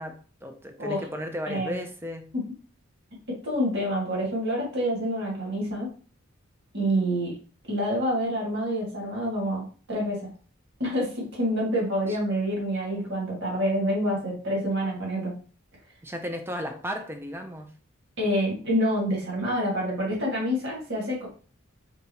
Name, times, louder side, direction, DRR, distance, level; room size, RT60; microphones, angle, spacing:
voice 1, 0.0-2.3 12.1-12.2 16.0-17.7, equal, 10° right, 0.5 m, -35 dB
voice 2, 1.5-1.8 2.3-2.4 3.3-5.9 6.7-7.3 7.7-9.6 9.9-10.3 10.8-15.3 18.2-21.3, equal, 55° right, 1.8 m, -27 dB
3.9 x 3.5 x 2.8 m
head